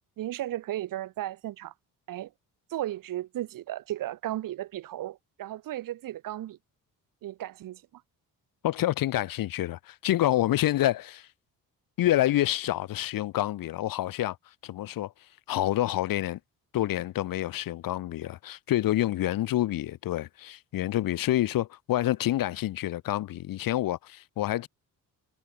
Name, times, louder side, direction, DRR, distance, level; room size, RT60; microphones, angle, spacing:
voice 1, 0.2-1.7 2.1-2.3 2.7-6.6 7.2-7.8, right 13 dB, 70° right, 1.1 m, -35 dB
voice 2, 8.6-11.3 12.0-14.4 14.6-15.1 15.5-16.4 16.7-24.7, left 14 dB, 75° left, 1.4 m, -27 dB
cardioid pair, 85°, 35 cm